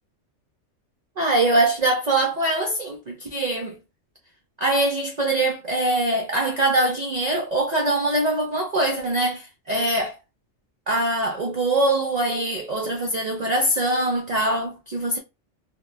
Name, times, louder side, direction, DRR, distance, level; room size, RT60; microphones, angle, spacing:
voice 1, 1.2-3.8 4.6-10.2 10.9-15.2, right 2 dB, 60° right, 0.4 m, -23 dB
2.2 x 2.1 x 3.2 m
omnidirectional pair, 1.3 m